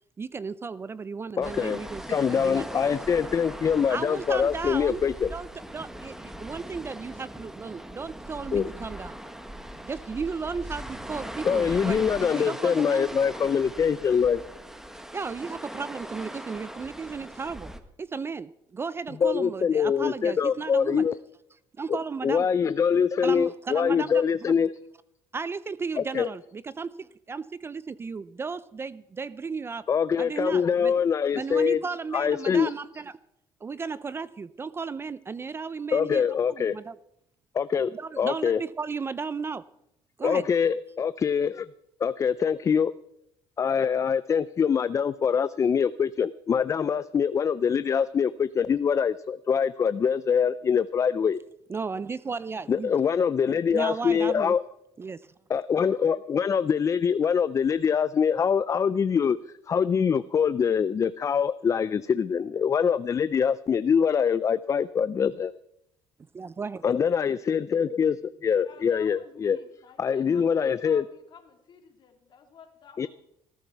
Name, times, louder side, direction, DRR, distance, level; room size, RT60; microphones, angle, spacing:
voice 1, 0.2-2.9 3.9-5.0 5.3-5.5 5.7-9.2 9.8-13.1 15.1-17.7 18.0-21.1 21.8-22.5 23.2-24.5 25.3-29.9 30.2-30.9 31.3-33.1 33.6-36.9 37.9-39.7 40.2-40.5 51.7-52.9 53.7-54.5 55.0-55.3 66.3-66.8, right 5 dB, 25° right, 17 dB, 0.5 m, -35 dB
voice 2, 1.4-1.8 2.1-5.3 8.5-8.7 11.4-14.4 19.2-21.2 21.9-22.0 22.2-24.7 26.0-26.3 29.9-31.8 32.1-32.7 35.9-36.8 37.5-37.9 38.2-38.6 40.2-41.7 42.0-42.9 43.6-51.4 52.7-54.6 55.5-59.4 59.7-65.5 66.8-69.6 70.0-71.0 73.0-73.1, left 7 dB, 30° left, 15 dB, 0.5 m, -24 dB
sound 1, 1.4-17.8, right 1 dB, 5° right, 1.3 m, -40 dB
voice 3, 68.6-73.1, left 6 dB, 45° left, 4 dB, 2.9 m, -50 dB
19.0 x 13.0 x 4.6 m, 0.76 s
cardioid pair, 120°, 11 cm